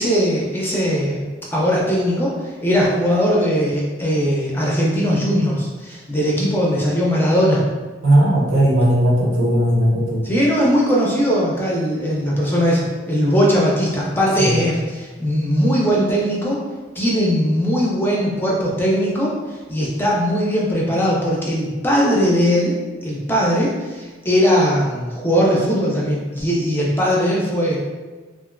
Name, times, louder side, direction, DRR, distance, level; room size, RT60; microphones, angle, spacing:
voice 1, 0.0-7.7 10.2-16.6 17.0-19.4 19.7-22.8 23.0-27.8, equal, 10° left, -4 dB, 0.4 m, -19 dB
voice 2, 8.0-10.3 14.4-14.6, right 1 dB, 90° right, -3 dB, 0.7 m, -17 dB
2.9 x 2.4 x 2.4 m, 1.3 s
head